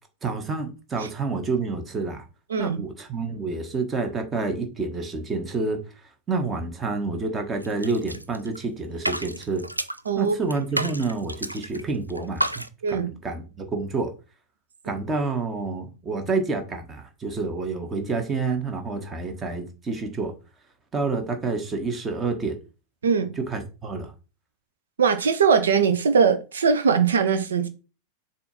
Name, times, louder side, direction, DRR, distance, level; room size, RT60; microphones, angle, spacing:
voice 1, 0.2-2.2 2.6-5.8 6.3-9.6 10.2-12.5 12.9-14.1 14.8-20.3 20.9-22.6 23.4-24.1, right 3 dB, 20° right, 1.4 m, -28 dB
sound 1, 7.6-8.6 8.9-10.1 10.5-11.8 12.1-12.7, right 1 dB, 85° right, 0.4 m, -30 dB
voice 2, 25.0-27.7, right 6 dB, 65° right, 0.9 m, -21 dB
6.8 x 2.9 x 5.3 m
figure-of-eight pair, 90°, 0 cm